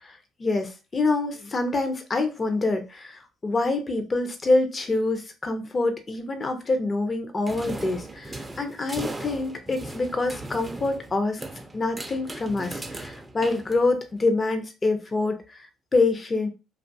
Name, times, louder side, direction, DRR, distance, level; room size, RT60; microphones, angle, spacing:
voice 1, 0.0-11.4 11.7-15.6 15.9-16.5, left 3 dB, 30° left, 6 dB, 0.6 m, -26 dB
sound 1, 7.5-14.2, right 2 dB, 15° right, 0.5 m, -38 dB
2.5 x 2.3 x 2.6 m, 0.29 s
supercardioid pair, 75°, 0 cm